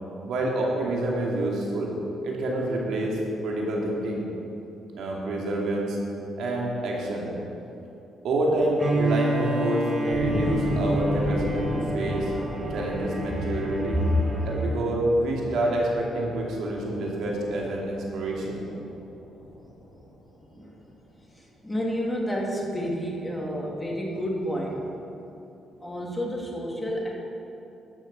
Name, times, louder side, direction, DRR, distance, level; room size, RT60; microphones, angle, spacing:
voice 1, 0.3-1.9 2.2-4.2 5.0-6.0 6.4-7.3 8.2-12.3 12.7-14.1 14.4-18.6 25.8-25.9, right 1 dB, 75° right, -2 dB, 2.5 m, -27 dB
Bowed string instrument, 8.8-14.8, right 1 dB, 35° right, 1.6 m, -29 dB
sound 1, 10.1-20.9, equal, 50° left, 3.0 m, -36 dB
voice 2, 21.6-24.9 25.8-27.1, equal, 10° left, -2 dB, 2.3 m, -30 dB
12.5 x 6.6 x 6.8 m, 2.8 s
cardioid pair, 90°, 0 cm